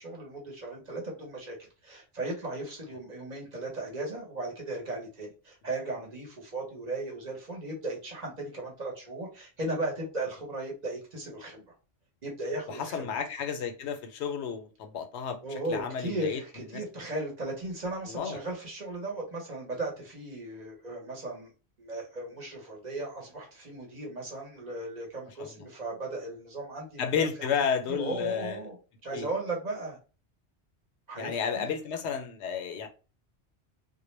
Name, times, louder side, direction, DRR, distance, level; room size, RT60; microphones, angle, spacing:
voice 1, 0.0-11.6 12.2-13.1 15.4-21.5 21.8-27.5 27.9-28.7 29.0-30.0 31.1-31.7, right 2 dB, 45° right, 0.9 m, -36 dB
voice 2, 12.7-16.8 18.0-18.4 25.4-25.7 27.0-28.6 29.1-29.3 31.2-32.9, left 7 dB, 80° left, 0.8 m, -32 dB
2.2 x 2.1 x 3.1 m
omnidirectional pair, 1.1 m